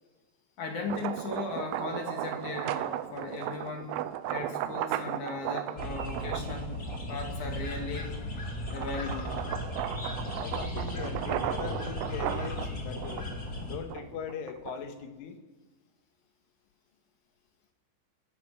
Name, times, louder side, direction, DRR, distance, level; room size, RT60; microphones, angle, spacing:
voice 1, 0.6-6.8 7.1-8.3 8.7-9.4, left 4 dB, 50° left, 3 dB, 2.5 m, -37 dB
sound 1, 0.7-7.3 7.9-15.0, right 13 dB, 80° right, 3.4 m, -36 dB
sound 2, 5.8-13.8, left 1 dB, 30° left, 1.7 m, -36 dB
voice 2, 10.4-13.3 13.7-15.4, left 7 dB, 75° left, 6 dB, 3.9 m, -40 dB
25.5 x 17.5 x 6.2 m, 1.3 s
omnidirectional pair, 6.0 m